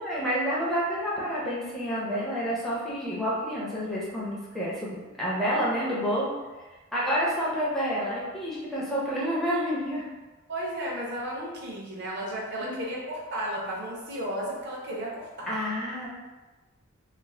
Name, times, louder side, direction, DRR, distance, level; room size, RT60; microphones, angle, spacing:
voice 1, 0.0-6.3 6.9-10.1 12.6-12.9 15.5-16.1, equal, ahead, -8 dB, 0.5 m, -29 dB
voice 2, 10.5-15.6, right 1 dB, 55° right, -4 dB, 0.5 m, -34 dB
2.4 x 2.0 x 3.1 m, 1.2 s
head